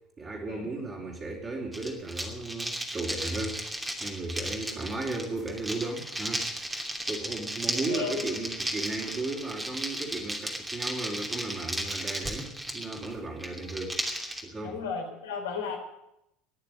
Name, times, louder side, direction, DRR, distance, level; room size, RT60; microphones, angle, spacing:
voice 1, 0.2-3.6 4.0-6.6 7.1-14.0 14.4-14.8, right 2 dB, 25° right, -5 dB, 4.1 m, -35 dB
sound 1, 1.7-14.4, right 1 dB, 10° right, 2.8 m, -35 dB
voice 2, 7.9-8.4 14.6-15.8, left 6 dB, 75° left, 1 dB, 4.0 m, -34 dB
20.0 x 6.9 x 9.9 m, 0.84 s
figure-of-eight pair, 70°, 0 cm